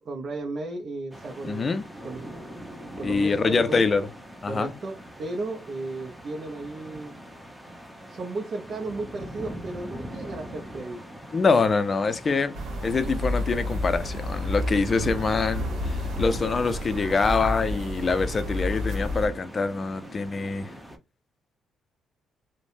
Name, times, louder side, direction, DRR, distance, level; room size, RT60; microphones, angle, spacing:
voice 1, 0.0-1.7 2.0-2.3 3.0-3.8 4.5-7.2 8.1-11.1, right 2 dB, 50° right, 0.6 m, -34 dB
sound 1, 1.1-21.0, equal, 5° right, 0.7 m, -43 dB
voice 2, 1.4-1.8 3.0-4.1 4.4-4.7 11.3-12.6 12.8-20.7, left 4 dB, 35° left, 0.4 m, -25 dB
sound 2, 12.5-19.3, left 1 dB, 75° right, 1.1 m, -30 dB
3.2 x 2.1 x 2.6 m
cardioid pair, 90°, 0 cm